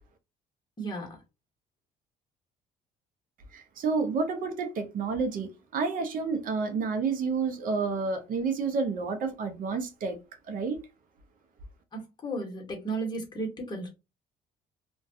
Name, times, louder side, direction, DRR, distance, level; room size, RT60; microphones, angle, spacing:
voice 1, 0.8-1.2 11.9-13.9, right 2 dB, 25° left, 1.2 m, -34 dB
voice 2, 3.5-10.2 10.5-10.8, right 4 dB, 55° right, 0.6 m, -30 dB
2.3 x 2.2 x 2.6 m
cardioid pair, 110°, 17 cm